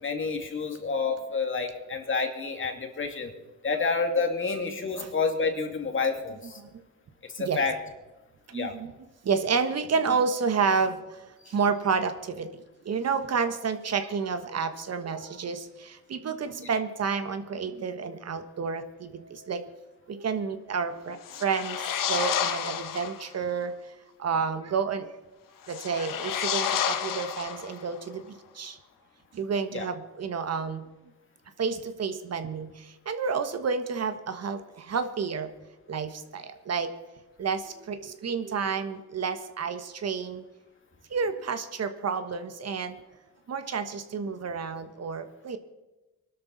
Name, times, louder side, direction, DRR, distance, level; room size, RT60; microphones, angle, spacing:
voice 1, 0.0-3.3 3.6-6.6 7.2-7.8 8.5-8.7 29.7-29.9, left 4 dB, 40° left, 4 dB, 2.4 m, -29 dB
voice 2, 8.5-8.9 9.2-19.6 20.1-23.7 24.2-25.1 25.7-28.8 29.3-30.8 31.6-35.5 35.9-36.9 37.4-40.4 41.1-43.0 43.5-45.6, right 5 dB, 50° right, 9 dB, 1.3 m, -30 dB
sound 1, 21.2-23.3 25.6-28.0, left 9 dB, 75° left, 1.4 m, -30 dB
21.0 x 12.5 x 4.1 m, 1.1 s
cardioid pair, 100°, 32 cm